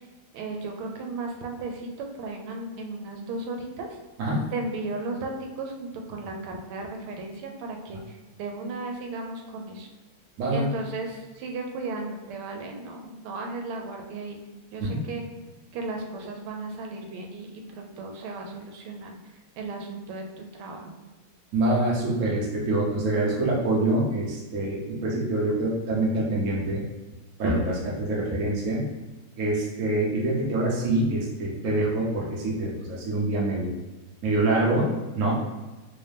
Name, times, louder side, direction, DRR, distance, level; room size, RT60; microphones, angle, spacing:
voice 1, 0.3-4.0 4.5-9.9 10.5-14.4 14.7-15.3 15.7-19.2 19.6-20.9, right 3 dB, 85° right, 2 dB, 1.5 m, -35 dB
voice 2, 10.4-10.7 14.8-15.0 21.5-26.8 27.4-28.9 29.4-33.7 34.2-35.3, right 2 dB, 60° right, -4 dB, 0.8 m, -25 dB
3.5 x 2.7 x 3.3 m, 1.2 s
omnidirectional pair, 2.3 m